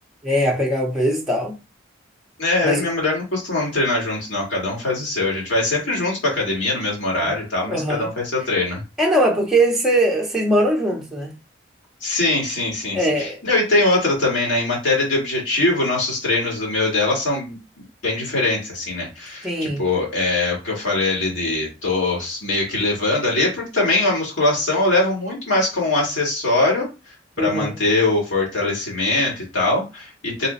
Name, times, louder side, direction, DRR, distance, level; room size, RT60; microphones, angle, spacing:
voice 1, 0.2-1.5 2.6-2.9 7.2-7.3 7.7-8.1 9.0-11.3 12.9-13.4 19.4-19.8 27.4-27.7, right 1 dB, 5° right, 0.6 m, -21 dB
voice 2, 2.4-8.8 12.0-17.6 18.0-26.9 27.4-30.5, left 2 dB, 75° left, 2.0 m, -22 dB
4.0 x 2.2 x 3.9 m
head